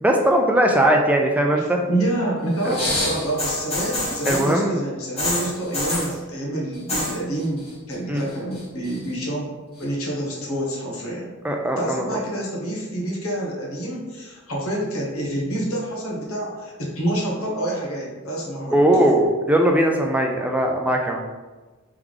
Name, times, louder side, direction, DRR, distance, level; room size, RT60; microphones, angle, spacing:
voice 1, 0.0-1.8 2.7-2.8 4.3-4.8 8.1-8.2 11.4-12.1 18.7-21.2, right 1 dB, 5° right, 2 dB, 0.3 m, -19 dB
voice 2, 1.6-11.2 11.8-18.8, right 1 dB, 85° left, -3 dB, 1.2 m, -27 dB
sound 1, 2.6-4.5 5.2-6.1 6.7-7.2 7.4-7.9 8.3-9.1 9.8-9.9, left 1 dB, 30° left, 1.5 m, -26 dB
3.5 x 3.3 x 3.6 m, 1.2 s
head